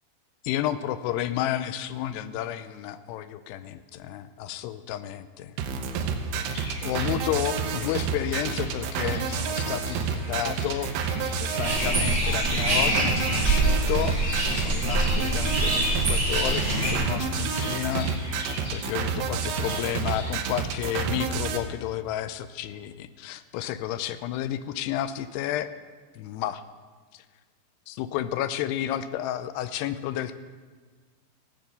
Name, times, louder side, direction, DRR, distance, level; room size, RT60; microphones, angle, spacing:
voice 1, 0.4-5.5 6.8-14.2 14.5-18.4 18.7-25.7 26.2-26.6 27.1-27.2 27.9-30.4, left 12 dB, 80° left, 13 dB, 2.5 m, -31 dB
sound 1, 5.6-21.6, right 5 dB, 80° right, 3.0 m, -29 dB
sound 2, 6.4-20.4, left 2 dB, 60° left, 4.2 m, -43 dB
sound 3, 11.6-16.9, right 1 dB, 15° right, 2.5 m, -25 dB
16.0 x 7.7 x 6.8 m, 1.5 s
omnidirectional pair, 5.0 m